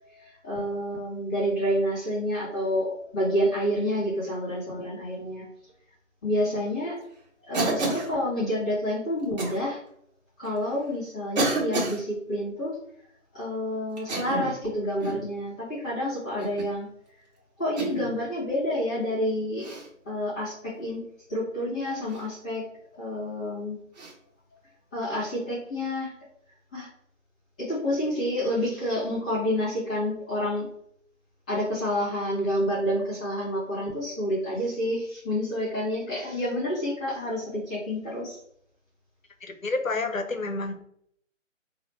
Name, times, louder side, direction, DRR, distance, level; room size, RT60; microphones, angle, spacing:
voice 1, 0.1-5.5 6.2-7.0 7.5-9.8 10.4-12.8 13.3-16.9 17.6-19.7 20.0-22.6 22.9-23.8 24.9-26.1 26.7-26.9 27.6-30.7 31.5-38.4, equal, 5° left, -11 dB, 0.7 m, -29 dB
Cough, 7.5-8.1 9.4-9.6 10.5-10.6 11.4-12.0 14.0-14.6 15.0-15.3 16.4-16.7 17.8-18.1 19.6-19.9 22.1-22.3 24.0-24.1, right 2 dB, 30° right, 1.4 m, -29 dB
voice 2, 39.4-40.7, left 3 dB, 80° left, 7 dB, 0.9 m, -30 dB
4.9 x 2.9 x 3.2 m, 0.67 s
figure-of-eight pair, 145°, 39 cm